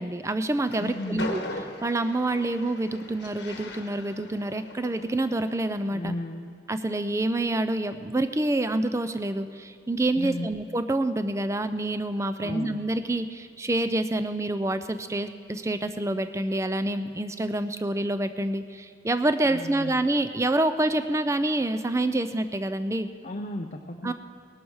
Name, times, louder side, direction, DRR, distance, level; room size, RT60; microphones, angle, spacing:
voice 1, 0.0-1.4 1.8-6.1 6.7-23.1 24.0-24.1, right 1 dB, 15° right, 10 dB, 0.4 m, -27 dB
Train, 0.5-5.8, left 2 dB, 60° left, 1.4 m, -40 dB
voice 2, 0.8-1.3 5.9-6.4 10.1-10.5 12.4-12.8 19.4-20.0 23.2-24.1, left 1 dB, 40° left, 4 dB, 0.6 m, -34 dB
20.0 x 11.5 x 4.7 m, 2.4 s
head